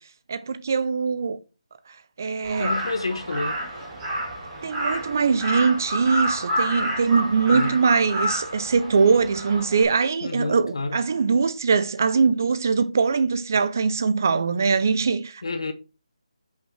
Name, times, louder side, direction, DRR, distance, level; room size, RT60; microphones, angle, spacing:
voice 1, 0.3-1.4 2.2-2.8 4.6-15.4, right 5 dB, 25° right, 0.4 m, -22 dB
Crow, 2.4-9.8, equal, 10° right, 1.3 m, -29 dB
voice 2, 2.6-3.6 7.4-7.7 10.2-11.0 15.4-15.7, left 3 dB, 50° left, 0.8 m, -29 dB
5.6 x 4.6 x 4.3 m
hypercardioid pair, 180°, 4 cm